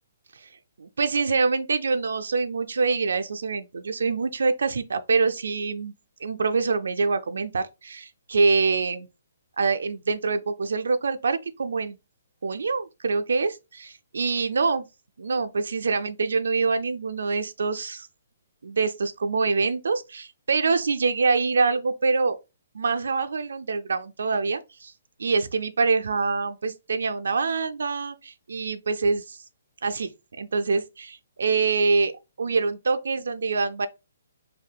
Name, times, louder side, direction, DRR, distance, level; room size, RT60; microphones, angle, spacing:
voice 1, 0.8-5.9 6.2-9.1 9.6-12.0 12.4-14.8 15.2-18.1 18.6-22.4 22.7-24.9 25.2-29.4 29.8-30.1 30.4-32.1 32.4-33.9, right 4 dB, 85° right, 0.4 m, -25 dB
3.4 x 2.6 x 2.2 m
hypercardioid pair, 170°, 0 cm